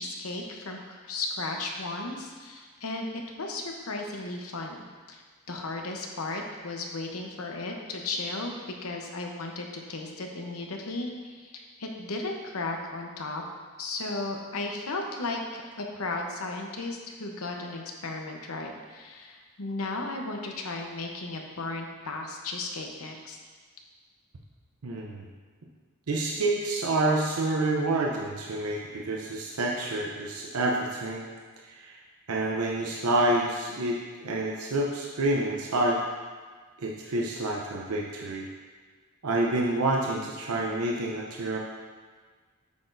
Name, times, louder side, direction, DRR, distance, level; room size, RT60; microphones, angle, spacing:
voice 1, 0.0-5.2 5.5-8.5 8.8-13.4 13.8-23.4, left 2 dB, 75° left, 2 dB, 0.9 m, -35 dB
voice 2, 24.8-25.2 26.1-31.3 31.8-32.0 32.3-36.0 36.8-38.5 39.2-41.6, right 2 dB, 85° right, -2 dB, 0.7 m, -28 dB
8.7 x 6.0 x 2.6 m, 1.5 s
head